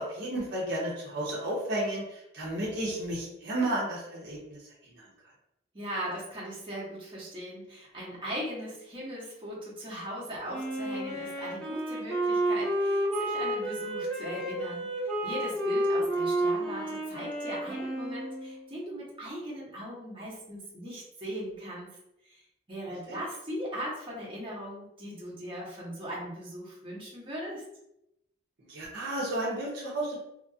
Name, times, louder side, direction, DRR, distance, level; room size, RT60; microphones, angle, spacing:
voice 1, 0.0-4.4 4.9-5.0 23.1-23.2 28.7-30.2, right 1 dB, 60° right, -5 dB, 0.8 m, -32 dB
voice 2, 5.7-21.9 22.3-22.4 22.7-27.6, equal, 25° right, -6 dB, 1.1 m, -39 dB
Wind instrument woodwind instrument, 10.5-18.6, right 1 dB, 5° left, 1.0 m, -31 dB
2.9 x 2.5 x 2.7 m, 0.83 s
head